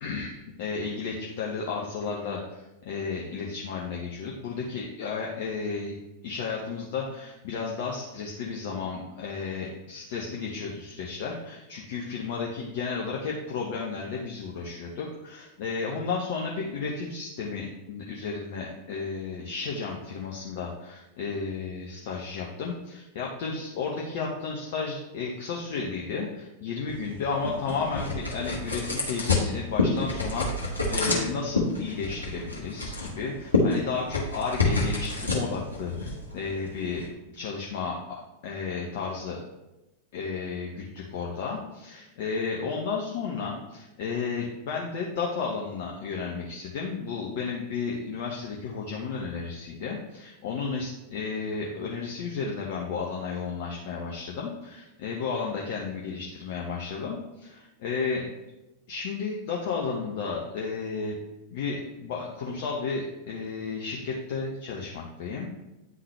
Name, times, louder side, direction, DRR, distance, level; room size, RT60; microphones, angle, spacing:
voice 1, 0.0-6.0 6.2-37.1 37.3-37.9 38.4-39.4 40.1-58.2 58.9-61.2 61.5-65.5, left 5 dB, 50° left, -2 dB, 0.8 m, -33 dB
sound 1, 26.9-37.1, left 3 dB, 80° left, 1.3 m, -29 dB
9.3 x 3.9 x 3.2 m, 0.99 s
figure-of-eight pair, 90°, 0 cm